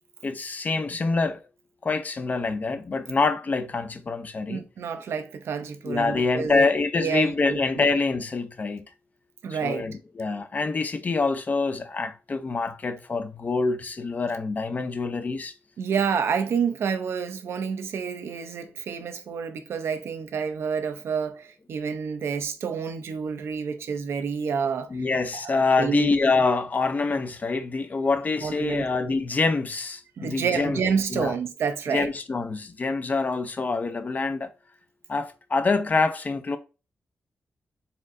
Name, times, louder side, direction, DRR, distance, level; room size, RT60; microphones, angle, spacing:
voice 1, 0.2-1.4 1.8-4.6 5.9-8.8 9.5-15.5 24.9-30.8 31.1-31.3 31.9-34.5 35.1-36.6, left 3 dB, 40° left, 0.6 m, -26 dB
voice 2, 4.5-6.7 7.0-7.9 9.4-9.9 15.8-24.9 25.3-26.1 28.4-28.8 30.2-32.1, right 6 dB, 75° right, 0.6 m, -29 dB
4.3 x 3.7 x 2.6 m
cardioid pair, 85°, 4 cm